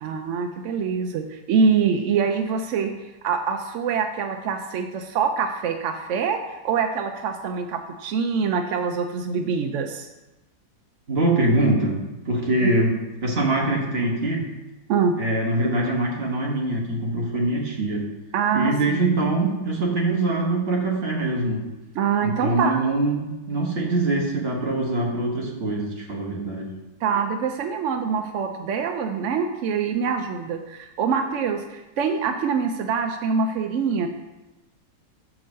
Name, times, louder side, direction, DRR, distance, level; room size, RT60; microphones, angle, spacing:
voice 1, 0.0-2.9 3.2-10.1 12.6-12.7 14.9-15.1 18.3-19.2 22.0-22.8 27.0-34.1, right 6 dB, 75° right, 6 dB, 0.7 m, -24 dB
voice 2, 11.1-14.5 15.2-18.1 18.5-21.6 22.2-26.7, right 2 dB, 40° right, -1 dB, 1.4 m, -23 dB
6.0 x 4.9 x 6.4 m, 1.1 s
omnidirectional pair, 1.8 m